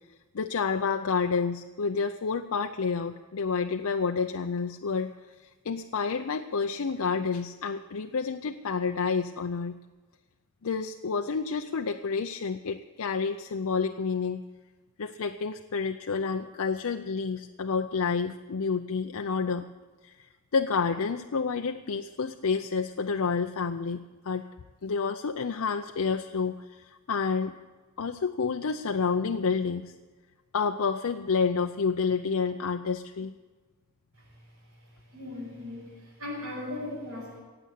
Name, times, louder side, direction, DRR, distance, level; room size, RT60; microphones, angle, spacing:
voice 1, 0.3-5.1 5.4-9.7 10.6-14.4 15.0-19.6 20.0-24.0 24.2-24.5 24.8-27.5 28.0-29.9 30.5-33.3, left 5 dB, 75° left, 6 dB, 0.5 m, -29 dB
voice 2, 35.1-37.4, left 2 dB, 75° right, -9 dB, 6.7 m, -38 dB
16.0 x 8.9 x 8.3 m, 1.3 s
head